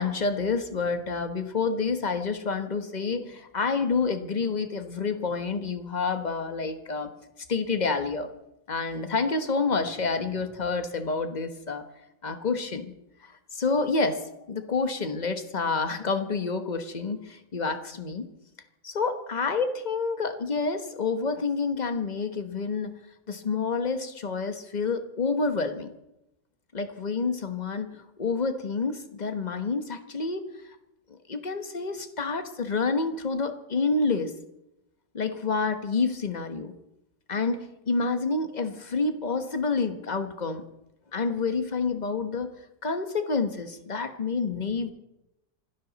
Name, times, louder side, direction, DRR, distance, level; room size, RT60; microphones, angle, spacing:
voice 1, 0.0-7.1 7.5-8.3 8.7-11.8 12.2-12.9 13.2-18.3 18.8-25.9 26.7-30.4 31.3-34.3 35.1-36.7 37.3-40.6 41.1-42.5 42.8-44.9, left 4 dB, 30° left, 9 dB, 1.1 m, -28 dB
26.5 x 12.5 x 4.1 m, 0.89 s
omnidirectional pair, 1.9 m